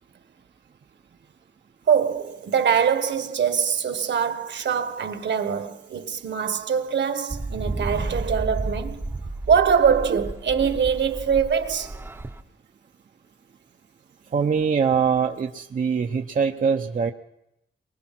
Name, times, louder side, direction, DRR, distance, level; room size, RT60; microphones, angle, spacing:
voice 1, 1.9-9.1 9.5-11.9, right 7 dB, 65° right, 1.4 m, -23 dB
sound 1, 7.3-12.4, right 2 dB, 10° right, 0.8 m, -32 dB
voice 2, 14.3-17.1, right 6 dB, 45° right, 0.7 m, -23 dB
23.5 x 20.0 x 6.0 m
wide cardioid pair, 170°, 19 cm